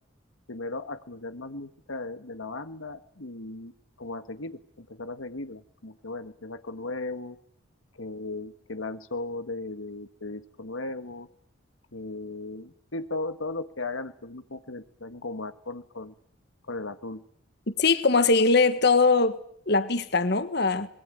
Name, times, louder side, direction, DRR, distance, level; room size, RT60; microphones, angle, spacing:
voice 1, 0.5-3.7 4.0-7.4 8.0-11.3 11.9-16.1 16.7-17.2, left 2 dB, 80° left, 1.6 m, -36 dB
voice 2, 17.7-19.4 19.7-20.9, left 3 dB, 55° left, 1.6 m, -21 dB
24.5 x 22.0 x 9.0 m
head